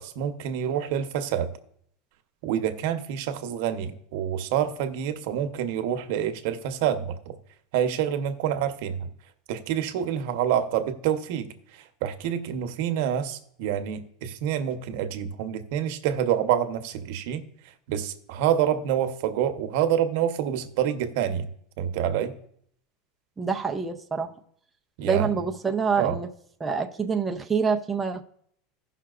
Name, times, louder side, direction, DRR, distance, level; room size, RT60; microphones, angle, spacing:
voice 1, 0.0-1.5 2.4-7.3 7.7-9.1 9.5-17.4 17.9-21.5 21.8-22.4 25.0-25.3 26.0-26.2, right 9 dB, 70° right, 8 dB, 0.9 m, -27 dB
voice 2, 23.4-24.3 25.0-26.3 26.6-28.2, right 5 dB, 10° right, 3 dB, 0.5 m, -26 dB
16.5 x 5.8 x 2.4 m, 0.66 s
supercardioid pair, 145°, 0 cm